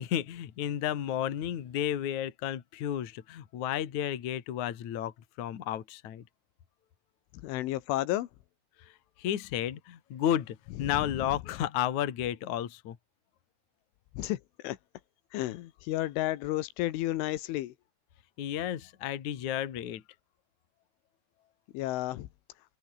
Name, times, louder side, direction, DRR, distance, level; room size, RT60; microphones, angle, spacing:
voice 1, 0.0-6.2 9.2-13.0 18.4-20.0, left 11 dB, 50° left, 2.8 m, -32 dB
voice 2, 7.4-8.3 10.9-11.3 14.2-14.8 15.3-17.7 21.7-22.3, left 15 dB, 85° left, 3.8 m, -32 dB
omnidirectional pair, 5.4 m